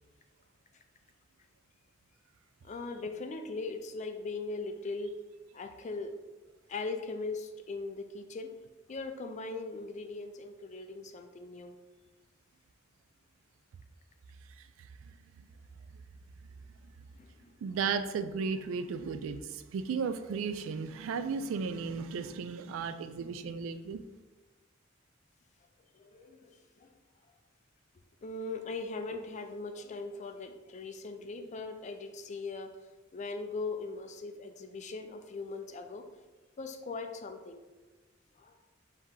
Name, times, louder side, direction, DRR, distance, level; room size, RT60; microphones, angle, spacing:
voice 1, 2.6-5.2 5.5-6.2 6.7-8.6 8.9-11.8 17.1-17.5 25.9-27.0 28.2-32.9 33.1-36.1 36.6-37.6 38.4-38.6, left 3 dB, 35° left, 7 dB, 0.4 m, -40 dB
voice 2, 17.6-24.0, right 5 dB, 80° right, 11 dB, 0.3 m, -34 dB
4.6 x 2.9 x 3.6 m, 1.2 s
head